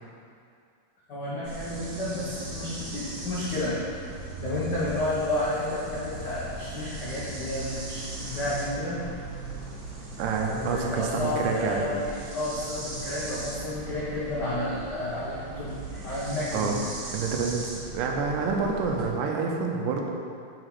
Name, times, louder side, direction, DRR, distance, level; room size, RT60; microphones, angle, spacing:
voice 1, 1.1-3.8 4.4-9.0 10.5-15.7 16.0-16.8, left 1 dB, 80° left, -9 dB, 0.9 m, -31 dB
sound 1, 1.4-19.1, right 2 dB, 60° right, 0.8 m, -38 dB
voice 2, 10.2-11.9 16.5-16.8 17.1-20.1, right 5 dB, 80° right, 1 dB, 2.4 m, -28 dB
8.1 x 4.2 x 5.8 m, 2.3 s
omnidirectional pair, 3.8 m